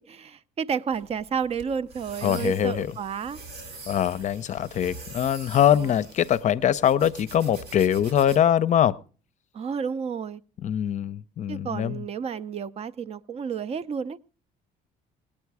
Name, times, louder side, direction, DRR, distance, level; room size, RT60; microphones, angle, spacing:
voice 1, 0.1-3.4 5.7-6.1 9.5-10.4 11.5-14.2, right 6 dB, 40° right, 0.5 m, -31 dB
sound 1, 0.9-8.4, right 3 dB, 85° right, 3.5 m, -44 dB
voice 2, 2.2-2.9 3.9-9.0 10.6-12.0, left 10 dB, 45° left, 0.5 m, -23 dB
18.5 x 8.8 x 4.7 m
cardioid pair, 110°, 17 cm